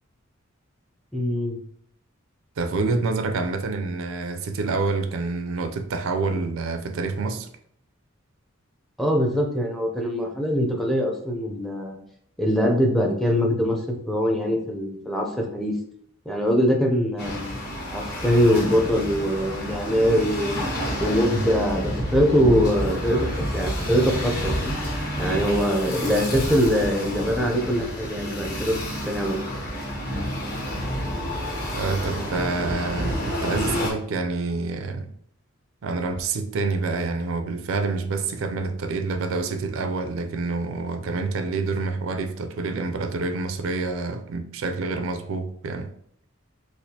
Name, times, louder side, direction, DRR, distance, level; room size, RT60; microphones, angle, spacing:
voice 1, 1.1-1.6 9.0-12.0 12.4-13.8 14.1-15.7 16.3-17.6 17.9-20.6 21.0-23.3 23.5-24.7 25.2-28.8 29.1-29.4, equal, ahead, 0.5 m, -23 dB
voice 2, 2.6-7.5 31.7-35.1 35.8-45.9, right 3 dB, 70° right, 0.4 m, -27 dB
sound 1, 17.2-33.9, equal, 45° left, 1.0 m, -29 dB
4.1 x 2.4 x 2.7 m
head